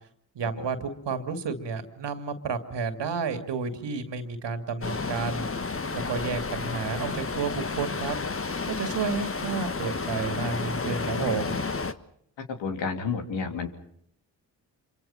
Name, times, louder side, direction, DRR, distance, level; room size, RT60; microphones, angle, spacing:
voice 1, 0.3-5.5 5.9-8.2 8.7-11.6, right 5 dB, 70° right, 8 dB, 2.6 m, -31 dB
sound 1, 4.8-11.9, left 4 dB, 30° left, 1.4 m, -31 dB
voice 2, 12.5-13.7, left 5 dB, 80° left, 5 dB, 3.0 m, -30 dB
26.5 x 24.5 x 5.8 m, 0.69 s
hypercardioid pair, 40°, 44 cm